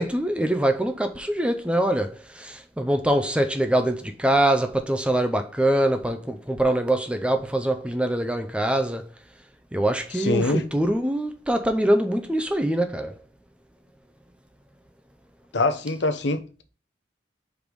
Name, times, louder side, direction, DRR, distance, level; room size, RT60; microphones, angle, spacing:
voice 1, 0.0-9.1 9.7-13.1, right 1 dB, 5° right, 0.5 m, -24 dB
voice 2, 10.1-10.6 15.5-16.4, left 2 dB, 75° left, 0.8 m, -24 dB
5.1 x 4.8 x 5.2 m
head